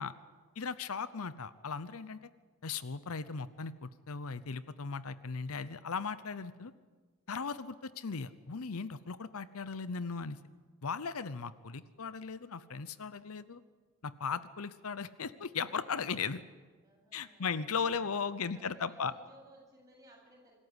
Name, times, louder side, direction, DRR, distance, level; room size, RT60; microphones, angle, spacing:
voice 1, 0.0-0.7 7.8-8.2 11.7-12.0 16.8-20.5, equal, 15° right, -2 dB, 7.9 m, -62 dB
voice 2, 0.6-2.3 2.6-6.7 7.3-10.4 10.8-13.6 14.0-16.4 17.1-19.1, left 5 dB, 75° left, 15 dB, 0.8 m, -37 dB
25.5 x 14.0 x 9.8 m, 1.4 s
head